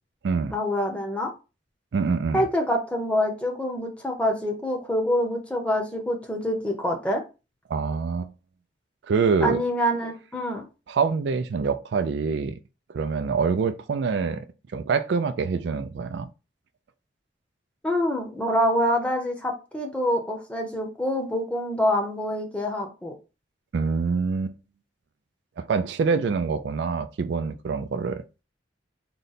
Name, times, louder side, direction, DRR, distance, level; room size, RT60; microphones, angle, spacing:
voice 1, 0.5-1.3 2.3-7.2 9.4-10.7 17.8-23.1, equal, 5° left, 0.7 m, -26 dB
voice 2, 1.9-2.4 7.7-8.3 9.1-9.6 10.9-12.6 12.9-14.5 14.7-16.3 23.7-24.6 25.6-28.2, right 5 dB, 65° right, 0.3 m, -25 dB
3.8 x 2.1 x 4.0 m
head